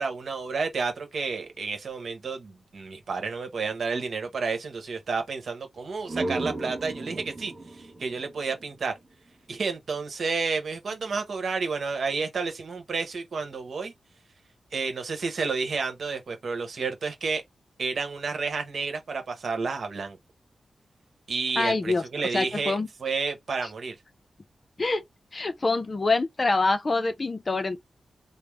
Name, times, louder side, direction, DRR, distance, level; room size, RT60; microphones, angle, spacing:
voice 1, 0.0-8.9 9.5-13.9 14.7-17.4 17.8-20.2 21.3-22.7 23.0-24.0, right 4 dB, 65° right, 1.1 m, -30 dB
sound 1, 5.8-9.4, right 2 dB, 20° right, 1.0 m, -36 dB
voice 2, 21.6-22.0 22.3-22.9 24.8-25.0 25.3-27.8, left 3 dB, 35° left, 0.5 m, -25 dB
3.4 x 2.0 x 3.2 m
wide cardioid pair, 115°, 0 cm